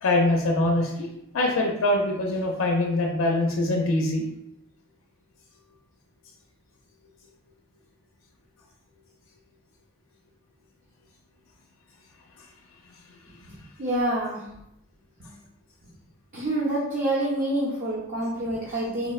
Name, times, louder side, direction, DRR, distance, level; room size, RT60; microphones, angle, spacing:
voice 1, 0.0-1.1 1.3-4.2, left 2 dB, 70° left, 0 dB, 0.4 m, -23 dB
voice 2, 13.5-14.4 16.3-19.1, right 1 dB, 40° right, -7 dB, 0.6 m, -27 dB
4.0 x 2.1 x 2.3 m, 0.81 s
head